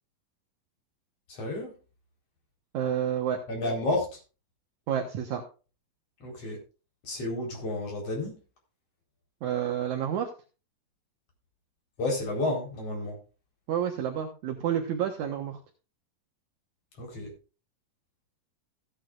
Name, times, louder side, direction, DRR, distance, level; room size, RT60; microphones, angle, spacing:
voice 1, 1.3-1.7 3.5-4.2 6.2-6.6 7.0-8.4 12.0-13.2 17.0-17.3, left 2 dB, 45° left, 0 dB, 5.3 m, -31 dB
voice 2, 2.7-3.4 4.9-5.4 9.4-10.3 13.7-15.6, right 9 dB, 65° right, 2 dB, 2.5 m, -29 dB
16.0 x 10.0 x 2.5 m, 0.34 s
omnidirectional pair, 3.8 m